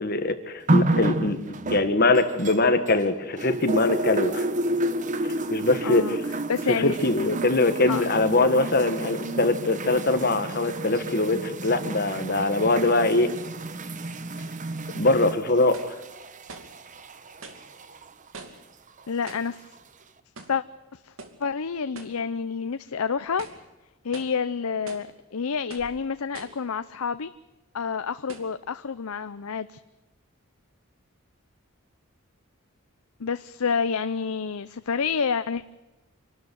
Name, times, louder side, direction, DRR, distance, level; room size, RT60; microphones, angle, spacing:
voice 1, 0.0-1.4 1.7-4.5 5.5-6.2 6.8-13.3 15.0-16.0, left 2 dB, 45° left, 9 dB, 1.7 m, -22 dB
sound 1, 0.7-3.0 3.4-18.1 19.0-19.1, right 2 dB, 35° right, 1.0 m, -30 dB
voice 2, 5.8-6.2 6.5-7.0 7.9-8.0 19.1-19.6 20.5-20.6 20.9-21.1 21.4-23.5 24.0-27.3 27.7-29.8 33.2-35.6, left 6 dB, 75° left, 12 dB, 0.6 m, -28 dB
sound 2, 15.7-16.0 16.5-16.8 17.4-17.7 18.3-18.7 19.3-19.6 20.4-20.6 21.2-21.4 21.9-22.2 22.7-22.8 23.3-23.7 24.1-24.4 24.9-25.1 25.7-26.0 26.3-26.7 27.4-27.5 28.3-28.6, right 3 dB, 65° right, 2.5 m, -44 dB
26.0 x 12.5 x 9.5 m, 1.1 s
head